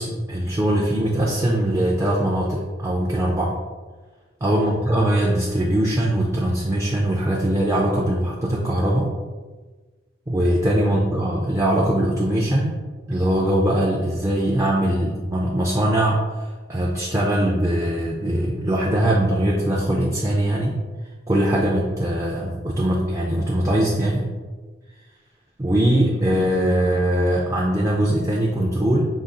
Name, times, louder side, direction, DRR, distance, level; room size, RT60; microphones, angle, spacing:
voice 1, 0.0-3.5 4.4-9.1 10.3-12.8 13.1-16.4 16.7-20.8 21.3-24.3 25.6-29.1, right 1 dB, 15° right, -3 dB, 0.4 m, -21 dB
5.1 x 2.3 x 3.7 m, 1.3 s
head